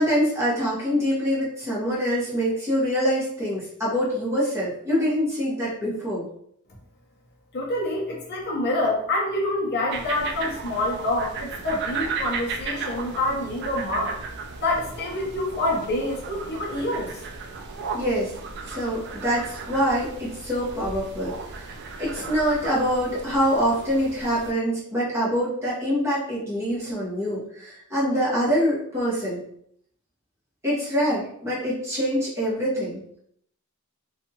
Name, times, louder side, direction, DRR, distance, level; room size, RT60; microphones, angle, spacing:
voice 1, 0.0-6.3 17.9-18.4 18.6-21.7 22.0-29.4 30.6-33.0, equal, 15° right, -8 dB, 1.1 m, -25 dB
voice 2, 7.5-14.1 14.6-17.1, left 1 dB, 50° left, -2 dB, 0.6 m, -26 dB
sound 1, 9.9-24.5, right 4 dB, 50° right, 0.3 m, -35 dB
2.7 x 2.3 x 2.8 m, 0.69 s
head